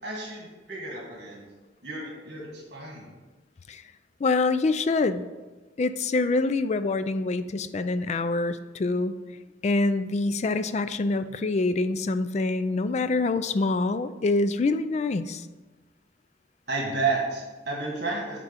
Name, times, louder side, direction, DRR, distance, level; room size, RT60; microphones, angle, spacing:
voice 1, 0.0-1.5 1.8-3.1 16.7-18.4, right 3 dB, 50° right, -3 dB, 1.6 m, -31 dB
voice 2, 4.2-5.2 5.8-9.1 9.6-15.4, left 3 dB, 35° left, 12 dB, 0.3 m, -25 dB
9.2 x 3.8 x 5.7 m, 1.2 s
head